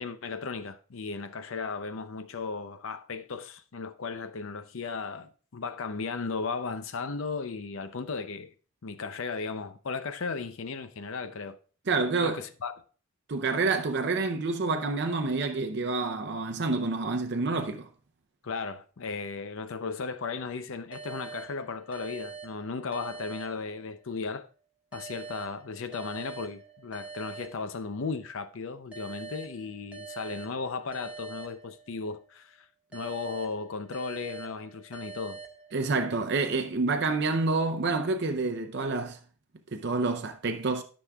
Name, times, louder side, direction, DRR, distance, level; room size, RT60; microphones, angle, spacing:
voice 1, 0.0-8.5 8.8-11.6 12.2-12.8 18.4-24.5 24.9-32.7 32.9-35.4, left 4 dB, 65° left, 0.6 m, -36 dB
voice 2, 11.9-12.4 13.3-17.9 35.7-39.2 39.7-40.8, right 3 dB, 50° right, 0.6 m, -28 dB
sound 1, 20.9-24.2 24.9-28.2 28.9-32.2 32.9-36.2, right 5 dB, 5° right, 1.5 m, -45 dB
13.0 x 6.1 x 2.3 m
head